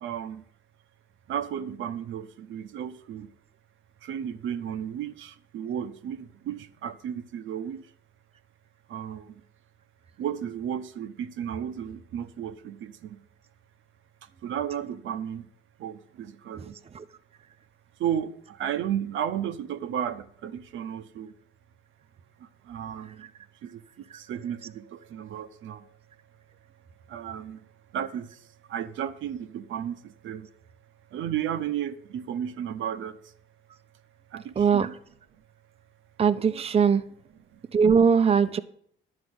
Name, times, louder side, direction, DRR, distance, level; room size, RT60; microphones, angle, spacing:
voice 1, 0.0-0.4 1.3-3.3 4.1-6.2 6.5-7.8 8.9-9.2 10.2-12.9 14.4-15.4 15.8-16.7 18.0-18.3 18.6-21.3 22.7-23.2 23.6-23.8 24.3-25.8 27.1-27.6 27.9-28.3 28.7-30.0 30.2-30.4 31.1-33.1 34.3-34.9 38.2-38.3, right 9 dB, 80° right, 0.8 m, -33 dB
voice 2, 34.6-34.9 36.2-37.0 37.7-38.6, right 6 dB, 30° right, 0.6 m, -20 dB
11.5 x 4.8 x 8.0 m
cardioid pair, 90°, 20 cm